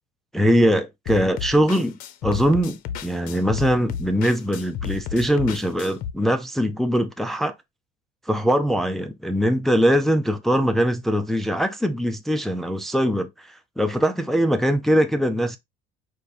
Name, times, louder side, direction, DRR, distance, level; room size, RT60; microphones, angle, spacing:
voice 1, 0.3-7.5 8.3-15.6, equal, ahead, 0.3 m, -22 dB
sound 1, 1.1-6.1, left 8 dB, 55° left, 0.7 m, -32 dB
4.7 x 2.5 x 4.1 m
cardioid pair, 160°, 17 cm